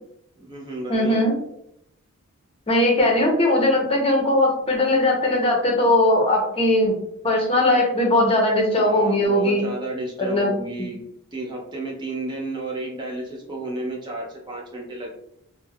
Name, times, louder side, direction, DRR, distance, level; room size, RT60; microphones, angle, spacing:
voice 1, 0.4-1.2 8.7-11.0 11.3-15.1, right 2 dB, 20° right, -1 dB, 0.4 m, -32 dB
voice 2, 0.9-1.3 2.7-6.9 7.2-9.6 10.2-10.9, left 1 dB, 25° left, -1 dB, 0.6 m, -19 dB
3.3 x 2.1 x 2.2 m, 0.77 s
head